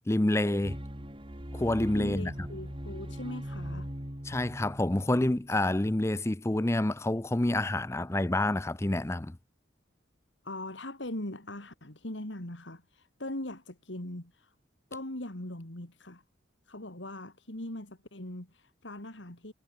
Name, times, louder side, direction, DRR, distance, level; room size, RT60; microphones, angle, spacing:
voice 1, 0.1-0.8 1.5-2.5 4.2-9.4, left 1 dB, 15° left, 0.5 m, -28 dB
sound 1, 0.6-5.9, equal, 25° right, 3.9 m, -40 dB
voice 2, 1.9-3.9 10.4-14.5 14.9-16.2 16.7-19.5, left 1 dB, 75° left, 3.4 m, -40 dB
head